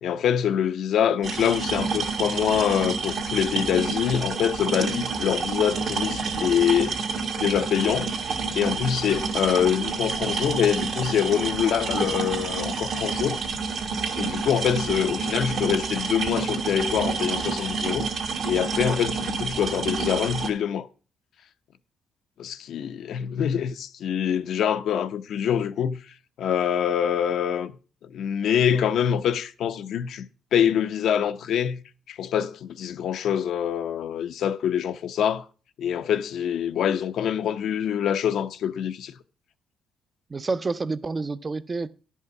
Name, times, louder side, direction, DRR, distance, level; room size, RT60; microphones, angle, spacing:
voice 1, 0.0-7.0 7.4-8.1 8.5-13.4 14.2-20.9 22.4-26.0 26.4-27.7 28.0-30.3 30.5-31.8 32.1-35.5 35.8-39.1, left 9 dB, 70° left, 0.7 m, -25 dB
sound 1, 1.2-20.5, right 5 dB, 65° right, 1.7 m, -29 dB
voice 2, 40.3-41.9, right 3 dB, 30° right, 0.6 m, -29 dB
10.5 x 5.6 x 6.0 m
cardioid pair, 90°, 0 cm